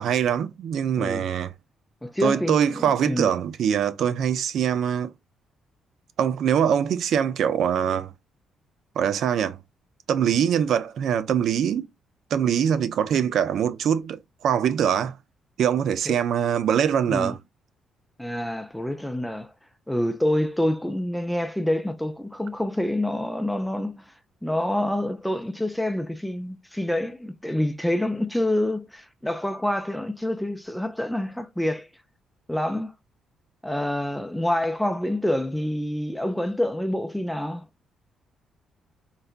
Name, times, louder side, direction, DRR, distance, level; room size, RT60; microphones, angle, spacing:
voice 1, 0.0-1.5 2.2-5.1 6.2-8.1 9.0-9.6 10.1-11.9 12.3-15.2 15.6-17.4, right 8 dB, 70° right, 0.4 m, -23 dB
voice 2, 2.0-3.3 16.1-16.2 17.1-17.4 18.2-19.5 19.9-24.1 24.4-31.9 32.5-32.9 33.6-37.7, left 1 dB, 5° left, 0.4 m, -27 dB
3.9 x 2.2 x 2.4 m
cardioid pair, 90°, 0 cm